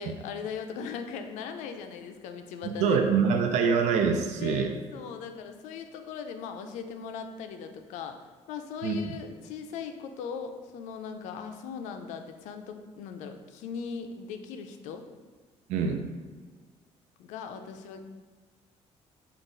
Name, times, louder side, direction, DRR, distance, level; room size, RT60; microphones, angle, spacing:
voice 1, 0.0-3.0 4.4-8.2 8.5-15.0 17.2-18.0, left 6 dB, 85° left, 7 dB, 0.4 m, -39 dB
voice 2, 2.6-4.7 8.8-9.0 15.7-16.0, right 6 dB, 75° right, 5 dB, 0.4 m, -25 dB
3.8 x 2.3 x 3.8 m, 1.4 s
cardioid pair, 135°, 12 cm